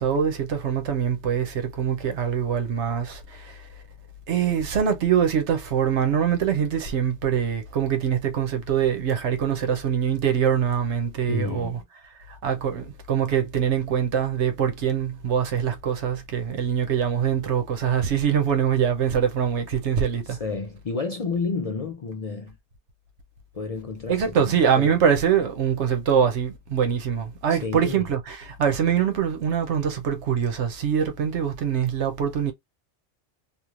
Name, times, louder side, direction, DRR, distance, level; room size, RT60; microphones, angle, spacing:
voice 1, 0.0-3.6 4.3-11.8 12.4-20.4 24.1-32.5, right 8 dB, 80° right, 1.0 m, -24 dB
voice 2, 11.3-11.8 20.2-22.6 23.5-24.9 27.5-28.1, left 4 dB, 50° left, 0.4 m, -31 dB
3.0 x 2.5 x 2.4 m
omnidirectional pair, 1.2 m